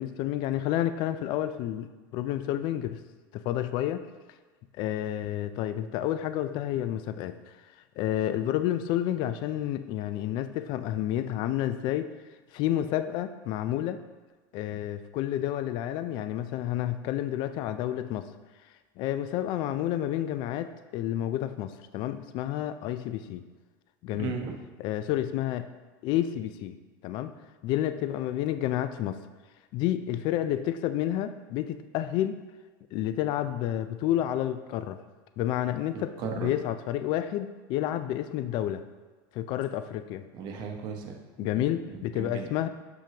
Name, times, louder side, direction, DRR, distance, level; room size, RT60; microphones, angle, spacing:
voice 1, 0.0-3.0 3.3-4.0 4.7-7.5 8.0-12.1 12.5-14.0 14.5-18.3 19.0-23.4 24.0-24.3 24.8-25.7 26.0-26.8 27.0-27.3 27.6-29.2 29.7-32.4 32.9-35.0 35.4-38.8 39.3-40.2 41.4-42.7, left 12 dB, 45° left, 10 dB, 0.4 m, -30 dB
voice 2, 24.2-24.5 36.2-36.5 40.3-41.6 41.9-42.5, right 6 dB, 45° right, 3 dB, 0.9 m, -36 dB
6.8 x 6.1 x 2.8 m, 1.3 s
supercardioid pair, 155°, 10 cm